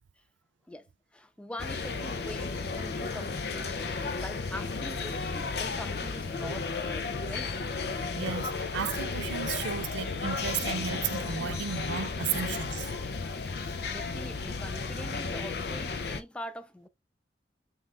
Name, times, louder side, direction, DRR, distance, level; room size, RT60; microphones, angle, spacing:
voice 1, 0.7-7.6 13.9-16.9, left 1 dB, 5° left, 0.4 m, -43 dB
sound 1, 1.6-16.2, left 4 dB, 60° left, 0.5 m, -33 dB
voice 2, 8.1-12.9, right 7 dB, 90° right, 0.4 m, -34 dB
5.5 x 2.4 x 3.3 m
head